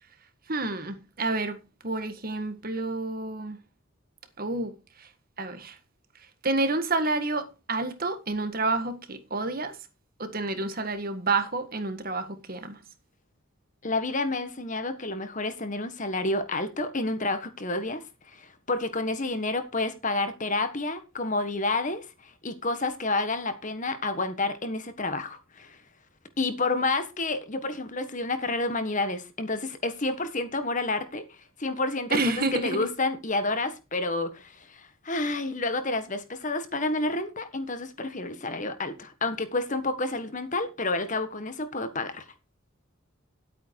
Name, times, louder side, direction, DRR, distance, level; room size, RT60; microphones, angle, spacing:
voice 1, 0.5-3.6 4.4-4.7 5.0-5.1 5.4-5.8 6.4-9.7 10.2-12.8 32.1-32.9, right 3 dB, 45° right, 1.7 m, -29 dB
voice 2, 13.8-18.0 18.3-25.8 26.4-31.2 31.6-42.2, left 2 dB, 35° left, 1.5 m, -29 dB
11.5 x 8.8 x 4.7 m
head